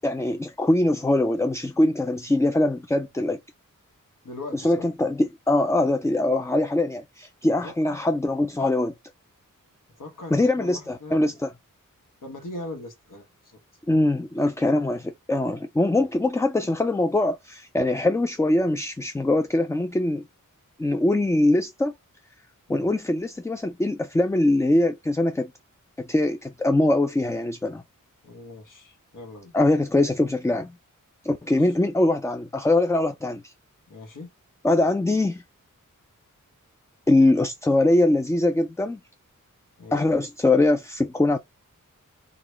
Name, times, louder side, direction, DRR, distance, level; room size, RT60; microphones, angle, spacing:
voice 1, 0.0-3.4 4.5-8.9 10.3-11.5 13.9-20.2 20.8-21.9 22.7-25.5 26.0-27.8 29.5-30.7 31.2-33.5 34.6-35.4 37.1-39.0 39.9-41.4, left 2 dB, 10° left, 0.3 m, -22 dB
voice 2, 4.2-4.9 7.6-8.1 10.0-11.3 12.2-13.6 15.9-16.1 22.7-22.8 28.2-29.5 31.6-31.7 33.9-34.3 39.8-40.1, left 2 dB, 70° left, 1.3 m, -40 dB
3.8 x 2.3 x 3.2 m
wide cardioid pair, 70°, 33 cm